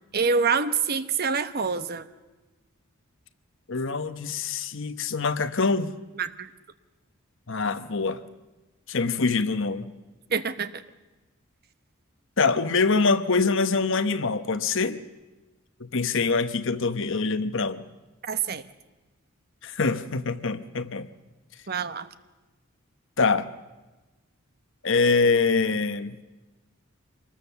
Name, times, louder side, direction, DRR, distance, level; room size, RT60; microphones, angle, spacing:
voice 1, 0.1-2.1 6.2-6.5 10.3-10.8 18.2-18.6 21.7-22.1, right 5 dB, 50° right, 1.0 m, -26 dB
voice 2, 3.7-5.9 7.5-8.2 8.9-9.9 12.4-15.0 15.8-17.9 19.6-21.1 23.2-23.5 24.8-26.2, left 4 dB, 60° left, 1.0 m, -24 dB
25.5 x 20.5 x 7.0 m
head